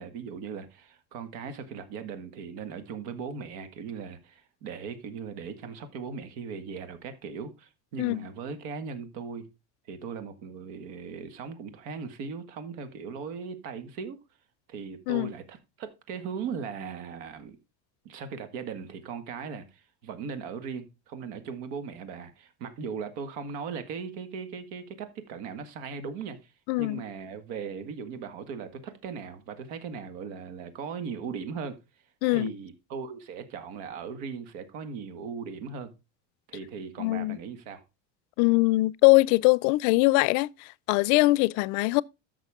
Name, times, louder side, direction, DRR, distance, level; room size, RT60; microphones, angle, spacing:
voice 1, 0.0-9.4 9.9-14.2 14.7-17.6 18.1-26.5 26.8-31.8 32.3-35.9 36.5-37.8, right 6 dB, 80° right, 1.9 m, -38 dB
voice 2, 26.7-27.0 32.2-32.5 37.0-37.4 38.4-42.0, left 22 dB, 75° left, 0.5 m, -22 dB
13.5 x 6.0 x 3.6 m
cardioid pair, 165°, 38 cm